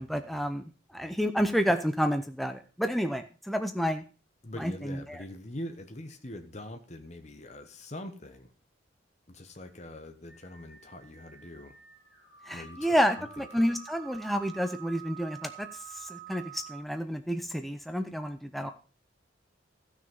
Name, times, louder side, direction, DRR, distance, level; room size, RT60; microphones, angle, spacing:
voice 1, 0.0-4.0 4.6-5.2 12.5-15.7 15.9-18.7, equal, ahead, 7 dB, 0.7 m, -30 dB
voice 2, 4.4-8.5 9.3-11.8 12.5-13.7, left 1 dB, 35° left, 6 dB, 1.1 m, -43 dB
sound 1, 10.3-16.8, right 10 dB, 55° left, 3.2 m, -49 dB
14.5 x 6.4 x 5.5 m, 0.36 s
head